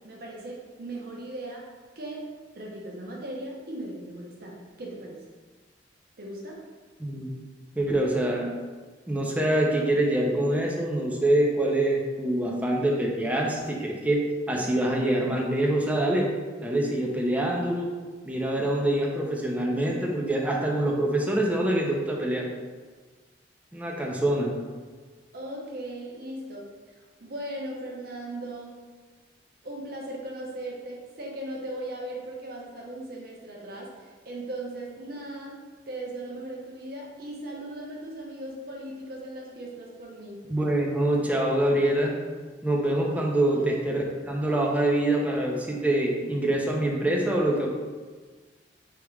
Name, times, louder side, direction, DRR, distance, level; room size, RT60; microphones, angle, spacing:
voice 1, 0.0-1.7 2.0-5.3 6.2-6.6 25.3-26.7 26.9-28.9 29.6-40.5 43.5-43.7, right 1 dB, 60° right, -2 dB, 0.8 m, -38 dB
voice 2, 7.0-7.3 7.8-8.5 9.1-14.2 14.5-16.3 16.6-17.9 18.2-22.5 23.7-24.5 40.5-42.1 42.6-47.7, right 1 dB, 10° right, -2 dB, 0.6 m, -25 dB
3.5 x 2.9 x 4.7 m, 1.4 s
head